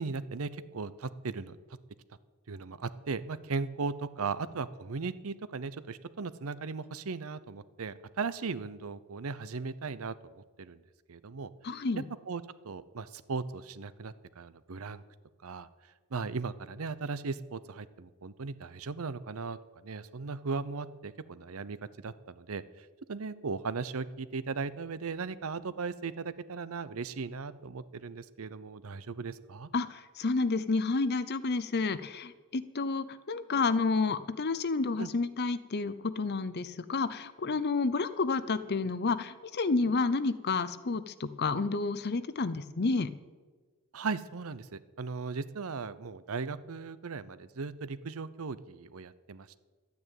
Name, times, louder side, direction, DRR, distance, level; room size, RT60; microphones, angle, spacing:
voice 1, 0.0-1.6 2.5-10.8 11.1-11.8 12.3-15.0 15.4-15.7 16.1-19.6 19.8-21.8 22.0-29.7 35.0-35.1 43.9-49.6, right 4 dB, 70° right, 15 dB, 0.7 m, -37 dB
voice 2, 11.6-12.0 29.7-43.1, left 3 dB, 45° left, 15 dB, 0.7 m, -30 dB
12.0 x 9.6 x 9.0 m, 1.4 s
head